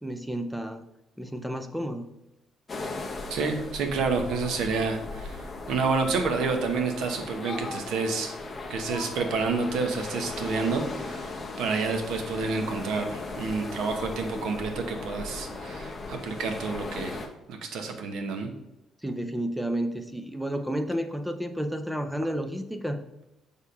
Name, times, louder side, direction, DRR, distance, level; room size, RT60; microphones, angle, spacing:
voice 1, 0.0-0.8 1.2-2.0 19.0-23.0, equal, 5° right, 7 dB, 0.5 m, -31 dB
sound 1, 2.7-17.3, left 3 dB, 20° left, 0.8 m, -37 dB
voice 2, 3.3-8.3 8.7-11.3 11.6-17.2 17.5-18.5, right 4 dB, 70° right, 5 dB, 1.0 m, -29 dB
6.5 x 3.6 x 5.5 m, 0.92 s
cardioid pair, 165°, 0 cm